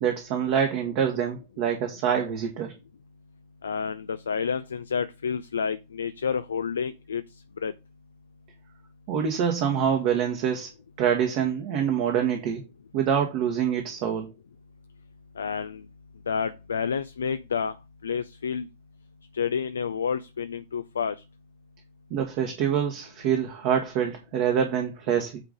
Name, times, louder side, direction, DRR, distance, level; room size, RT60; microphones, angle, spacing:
voice 1, 0.0-2.7 9.1-10.7 11.0-12.6 12.9-14.3 22.1-25.4, right 8 dB, 45° right, 1.6 m, -25 dB
voice 2, 3.6-7.2 7.6-7.7 15.4-15.8 16.3-17.7 18.0-18.7 19.3-21.2, left 6 dB, 70° left, 0.5 m, -29 dB
8.9 x 3.8 x 5.1 m
figure-of-eight pair, 90°, 0 cm